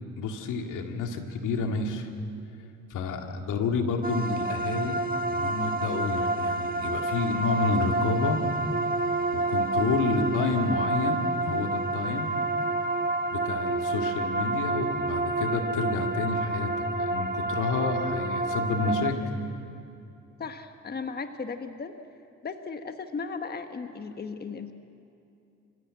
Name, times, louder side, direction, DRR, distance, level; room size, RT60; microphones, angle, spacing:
voice 1, 0.2-2.1 2.9-5.0 5.3-8.4 9.3-12.3 13.3-16.7 17.0-19.2, left 4 dB, 85° left, 3 dB, 2.3 m, -29 dB
sound 1, 4.0-19.1, right 2 dB, 30° right, 1.6 m, -29 dB
voice 2, 20.4-21.9 22.4-24.7, left 5 dB, 30° left, 7 dB, 1.2 m, -36 dB
27.5 x 16.5 x 7.7 m, 2.6 s
cardioid pair, 90°, 30 cm